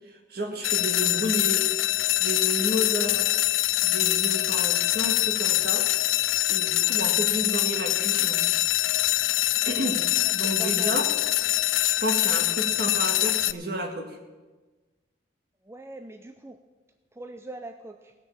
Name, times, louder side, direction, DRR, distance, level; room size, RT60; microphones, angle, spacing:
voice 1, 0.1-1.7 2.2-3.3 3.8-5.9 6.5-8.4 9.7-11.1 11.8-14.2, equal, 50° right, 4 dB, 1.8 m, -31 dB
sound 1, 0.6-13.5, left 17 dB, 80° left, 0.4 m, -24 dB
voice 2, 9.9-11.0 15.6-16.6 17.1-18.1, right 1 dB, 15° right, 6 dB, 0.4 m, -42 dB
17.0 x 6.6 x 7.3 m, 1.2 s
head